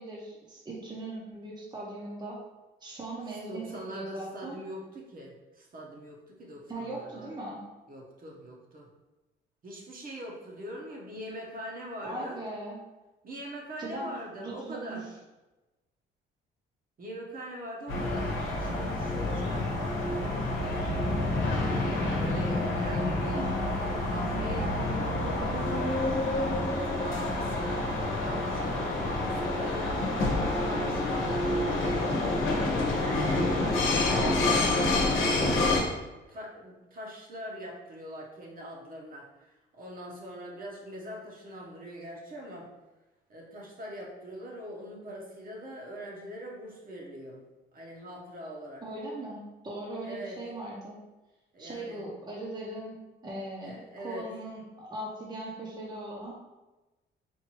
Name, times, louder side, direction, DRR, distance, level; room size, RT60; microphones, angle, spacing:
voice 1, 0.0-2.4 2.8-3.6 3.9-4.6 6.7-7.6 12.0-12.8 13.8-15.0 23.3-23.6 34.1-34.8 48.8-51.0 51.6-53.0 53.2-56.3, right 1 dB, 20° right, -4 dB, 0.8 m, -39 dB
voice 2, 3.3-7.3 7.9-8.9 9.6-12.4 13.2-15.1 17.0-19.8 20.1-21.3 22.1-23.4 23.7-24.8 25.3-26.3 26.7-31.5 32.9-35.9 36.3-42.7 43.3-47.4 47.7-48.8 50.0-50.4 51.5-52.1 53.6-54.3, equal, 45° right, -2 dB, 1.0 m, -42 dB
sound 1, 17.9-35.8, left 2 dB, 80° left, 0.9 m, -28 dB
4.4 x 2.6 x 3.0 m, 1.1 s
cardioid pair, 90°, 20 cm